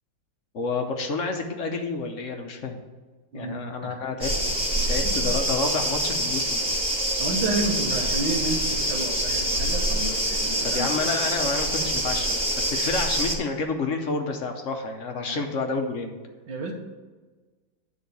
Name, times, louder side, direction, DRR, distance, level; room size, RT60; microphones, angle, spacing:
voice 1, 0.5-2.8 3.3-4.3 4.9-6.6 10.6-16.1, left 4 dB, 55° left, 4 dB, 0.9 m, -29 dB
voice 2, 3.3-4.0 5.0-5.2 7.2-10.9 15.3-15.4 16.5-16.7, right 2 dB, 90° right, 0 dB, 1.8 m, -31 dB
sound 1, 4.2-13.3, right 1 dB, 5° right, 1.2 m, -26 dB
9.7 x 3.8 x 6.7 m, 1.3 s
omnidirectional pair, 2.0 m